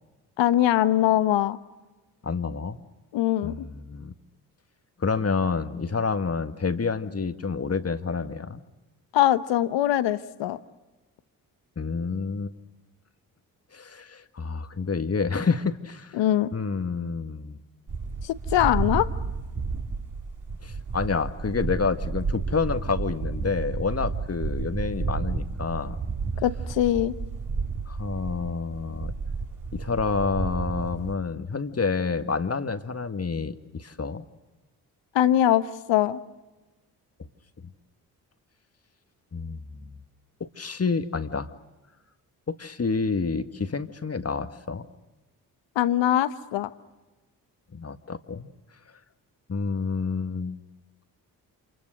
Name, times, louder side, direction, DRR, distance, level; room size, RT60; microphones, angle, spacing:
voice 1, 0.4-1.6 3.1-3.7 9.1-10.6 16.1-16.5 18.2-19.1 26.4-27.1 35.1-36.2 45.7-46.7, left 12 dB, 70° left, 13 dB, 1.2 m, -22 dB
voice 2, 2.2-2.8 3.4-4.1 5.0-8.6 11.8-12.5 13.7-16.2 16.5-17.6 20.6-26.0 27.9-29.1 29.7-34.2 39.3-40.0 40.4-41.5 42.5-44.8 47.7-48.5 49.5-50.6, left 4 dB, 30° left, 9 dB, 1.9 m, -28 dB
sound 1, 17.9-31.1, right 4 dB, 40° right, 3.4 m, -31 dB
28.5 x 27.5 x 6.5 m, 1.1 s
hypercardioid pair, 40°, 46 cm